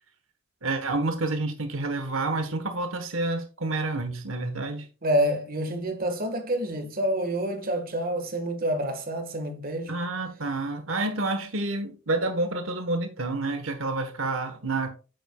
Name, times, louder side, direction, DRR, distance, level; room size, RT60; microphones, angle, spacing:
voice 1, 0.6-4.9 9.9-14.9, right 2 dB, 75° right, 1.3 m, -29 dB
voice 2, 5.0-10.0, right 1 dB, 45° right, 1.6 m, -28 dB
9.0 x 7.8 x 2.3 m
head